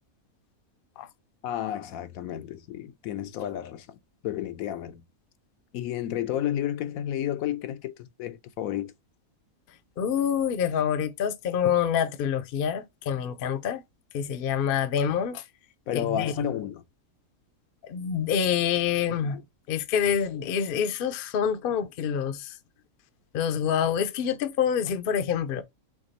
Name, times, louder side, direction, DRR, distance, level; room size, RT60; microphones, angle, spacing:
voice 1, 1.4-5.0 5.7-8.9 15.9-16.8 19.2-19.4, left 11 dB, 80° left, 1.0 m, -32 dB
voice 2, 10.0-13.8 14.1-15.4 15.9-16.4 17.8-19.4 19.7-22.6 23.3-25.6, left 8 dB, 60° left, 0.6 m, -26 dB
3.6 x 3.4 x 4.0 m
omnidirectional pair, 1.5 m